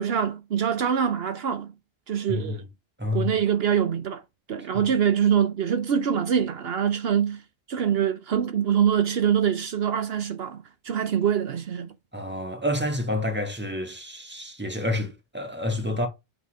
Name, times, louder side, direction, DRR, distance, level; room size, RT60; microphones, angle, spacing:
voice 1, 0.0-1.7 2.1-2.6 3.1-4.2 4.5-7.4 7.7-11.9, right 8 dB, 70° right, 1.0 m, -24 dB
voice 2, 2.3-2.6 3.0-3.3 4.7-4.8 12.1-16.1, left 1 dB, 10° right, 1.8 m, -29 dB
8.2 x 4.1 x 4.9 m
omnidirectional pair, 1.1 m